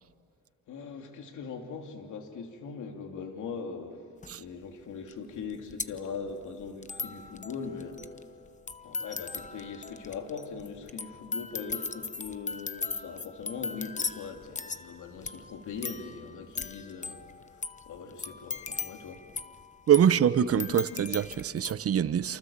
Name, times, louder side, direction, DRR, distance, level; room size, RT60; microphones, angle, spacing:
voice 1, 0.7-4.1 4.4-8.3 8.8-19.2, left 5 dB, 75° left, 3.2 m, -41 dB
sound 1, 4.2-4.3 5.1-5.2 5.4-21.7, left 4 dB, 25° left, 1.0 m, -39 dB
voice 2, 19.9-22.4, right 9 dB, 50° right, 0.9 m, -24 dB
28.5 x 28.0 x 7.4 m
cardioid pair, 90°, 30 cm